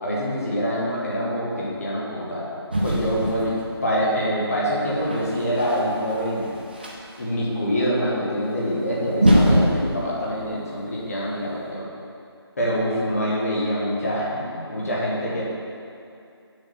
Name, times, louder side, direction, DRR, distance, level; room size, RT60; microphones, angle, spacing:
voice 1, 0.0-2.4 2.8-6.5 7.2-11.9 12.6-15.4, equal, 35° left, -6 dB, 1.6 m, -25 dB
sound 1, 2.7-3.9 4.7-7.2 8.6-8.7 9.1-11.3, equal, 20° right, 0.6 m, -23 dB
7.2 x 6.3 x 4.3 m, 2.5 s
figure-of-eight pair, 175°, 14 cm